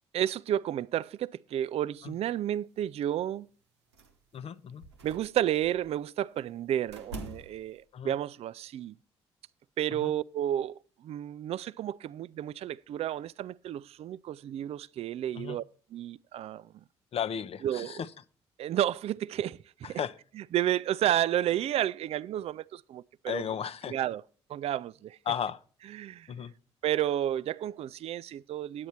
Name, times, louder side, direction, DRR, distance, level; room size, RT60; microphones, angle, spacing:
voice 1, 0.1-3.5 5.0-9.0 9.8-15.6 15.9-16.7 17.6-18.0 18.6-20.0 20.3-23.5 23.8-24.2 24.5-25.2 25.8-26.3 26.8-28.9, right 11 dB, 45° right, 0.4 m, -31 dB
sound 1, 3.9-4.4 4.8-5.9 6.9-7.8, right 1 dB, 90° right, 0.9 m, -45 dB
voice 2, 4.3-4.8 7.9-8.1 10.0-10.1 15.4-15.6 17.1-18.0 20.0-20.1 23.3-23.9 25.3-25.6 26.3-26.5, left 8 dB, 45° left, 0.6 m, -34 dB
9.1 x 8.5 x 4.3 m
hypercardioid pair, 45°, 14 cm